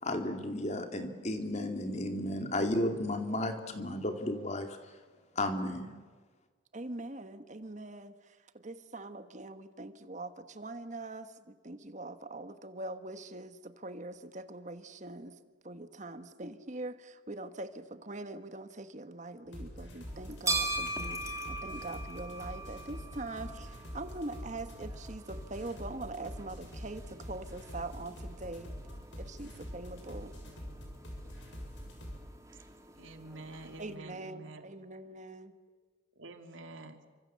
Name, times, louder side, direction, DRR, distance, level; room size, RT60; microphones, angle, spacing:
voice 1, 0.0-4.9 5.4-5.9, left 1 dB, 35° left, 6 dB, 2.6 m, -33 dB
voice 2, 6.7-15.3 15.6-28.7 29.2-30.3 33.8-35.5, right 2 dB, 40° right, 10 dB, 1.4 m, -43 dB
sound 1, 19.5-32.2, equal, 75° left, 7.4 m, -45 dB
sound 2, 20.1-33.9, right 2 dB, 15° right, 2.5 m, -42 dB
voice 3, 33.0-34.7 36.2-37.0, right 2 dB, 90° right, 6 dB, 2.5 m, -48 dB
29.0 x 25.5 x 7.6 m, 1.4 s
head